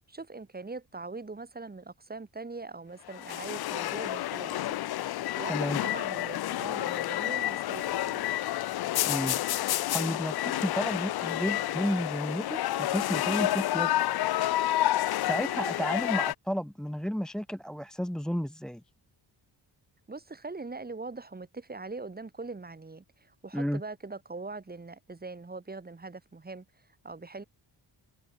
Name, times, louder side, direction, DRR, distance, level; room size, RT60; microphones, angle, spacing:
voice 1, 0.1-8.2 20.1-26.6 27.0-27.4, right 3 dB, 20° right, 5.0 m, -42 dB
sound 1, 3.1-16.3, left 14 dB, 60° left, 0.5 m, -29 dB
voice 2, 5.5-5.8 9.1-9.4 9.9-14.1 15.2-18.8 23.5-23.8, equal, ahead, 0.7 m, -32 dB
wide cardioid pair, 155°, 44 cm